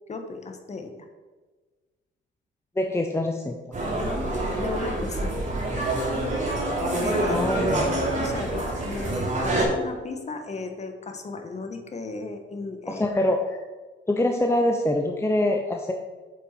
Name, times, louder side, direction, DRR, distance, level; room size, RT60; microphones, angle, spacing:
voice 1, 0.1-0.9 4.5-5.3 7.0-7.5 7.8-13.0, left 3 dB, 35° left, 5 dB, 1.4 m, -35 dB
voice 2, 2.8-3.6 7.3-7.6 12.9-13.6 14.1-15.9, left 1 dB, 15° left, 3 dB, 0.8 m, -24 dB
sound 1, 3.7-9.6, right 1 dB, 40° right, 3.2 m, -26 dB
8.4 x 7.1 x 4.5 m, 1.3 s
cardioid pair, 90°, 20 cm